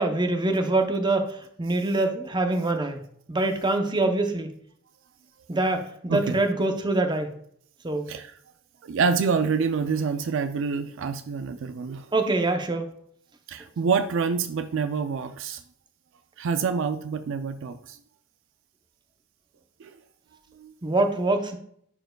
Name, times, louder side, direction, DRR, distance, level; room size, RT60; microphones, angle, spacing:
voice 1, 0.0-3.0 3.3-4.5 5.5-7.3 7.8-8.1 12.1-12.9 20.8-21.6, right 2 dB, 20° right, 5 dB, 0.7 m, -24 dB
voice 2, 8.8-12.1 13.5-15.6 16.4-18.0 19.8-20.0 20.6-20.7, right 5 dB, 60° right, 10 dB, 0.4 m, -27 dB
11.0 x 4.5 x 2.3 m, 0.66 s
head